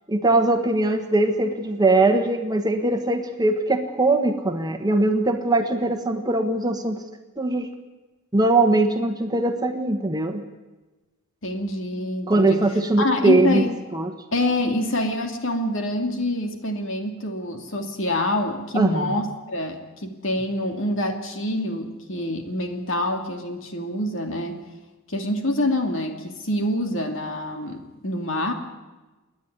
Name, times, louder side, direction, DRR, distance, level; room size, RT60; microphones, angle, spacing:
voice 1, 0.1-7.0 7.4-7.7 8.3-10.4 12.3-13.6 13.9-14.1 18.7-19.1, right 2 dB, 15° right, 5 dB, 1.4 m, -21 dB
voice 2, 11.4-12.6 13.0-13.7 14.3-24.6 25.1-28.5, left 1 dB, 60° left, 4 dB, 2.7 m, -26 dB
29.0 x 10.5 x 9.5 m, 1.2 s
head